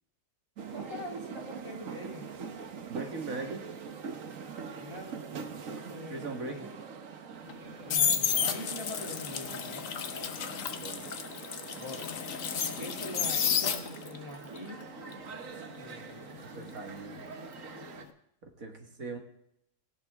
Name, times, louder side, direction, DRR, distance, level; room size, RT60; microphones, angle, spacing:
sound 1, 0.6-18.0, right 6 dB, 70° right, 1.5 m, -44 dB
voice 1, 0.7-2.3 4.8-5.2 5.6-6.7 7.9-9.8 11.8-12.1 12.8-14.9 15.7-16.3, equal, 20° right, 0 dB, 2.5 m, -43 dB
voice 2, 2.9-3.6 6.1-6.8 10.4-11.0 16.4-17.2 18.4-19.2, right 3 dB, 90° right, 3 dB, 2.2 m, -40 dB
sound 2, 7.5-14.2 14.6-17.5 17.7-18.1, left 7 dB, 75° left, 1.3 m, -32 dB
17.0 x 16.5 x 3.6 m, 0.76 s
omnidirectional pair, 1.4 m